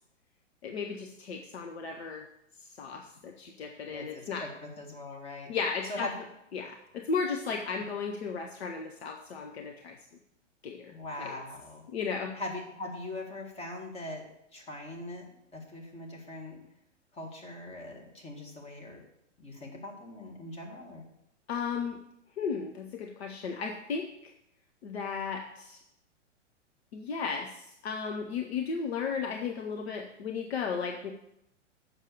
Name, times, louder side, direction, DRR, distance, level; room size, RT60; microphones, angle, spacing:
voice 1, 0.6-2.3 2.8-4.4 5.5-6.1 6.5-10.0 10.6-10.9 11.2-11.4 11.9-12.4 21.5-22.0 22.4-24.3 24.8-25.8 26.9-31.1, left 5 dB, 55° left, 3 dB, 1.0 m, -35 dB
voice 2, 3.9-5.5 5.8-6.1 10.9-11.8 12.4-14.2 14.5-15.3 15.5-16.6 17.1-19.0 19.4-21.1, left 2 dB, 15° left, 1 dB, 1.9 m, -41 dB
7.4 x 6.4 x 6.6 m, 0.82 s
figure-of-eight pair, 110°, 37 cm